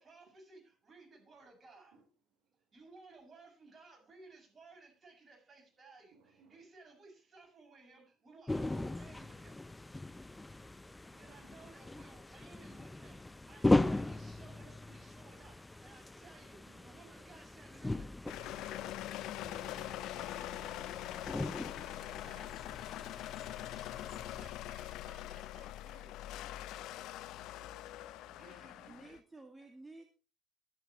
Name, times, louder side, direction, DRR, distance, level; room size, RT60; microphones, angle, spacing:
voice 1, 0.0-2.0 2.7-9.6 11.2-22.6 24.3-26.2 28.4-29.2, right 3 dB, 35° right, 7.1 m, -58 dB
voice 2, 6.1-6.6 11.1-11.7 14.5-14.7 16.7-17.1 18.7-18.9 19.9-20.1 22.3-22.5 23.8-24.8 27.3-29.0, right 5 dB, 65° right, 3.9 m, -66 dB
sound 1, 8.5-24.5, left 2 dB, 15° left, 0.7 m, -38 dB
sound 2, 18.3-29.2, left 14 dB, 65° left, 0.7 m, -43 dB
voice 3, 28.9-30.0, right 2 dB, 20° right, 2.3 m, -52 dB
23.5 x 8.2 x 3.1 m
hypercardioid pair, 55°, 0 cm